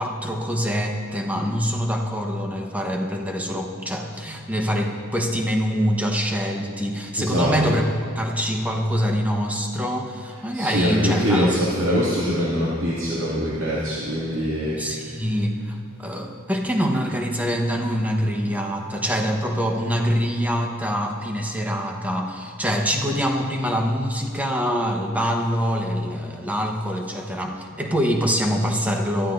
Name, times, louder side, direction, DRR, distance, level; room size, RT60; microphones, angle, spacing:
voice 1, 0.0-7.8 8.2-11.5 14.8-29.3, equal, 5° right, 2 dB, 1.1 m, -25 dB
voice 2, 7.2-7.8 10.5-15.3, equal, 65° right, -8 dB, 2.4 m, -23 dB
22.0 x 13.5 x 2.6 m, 2.1 s
head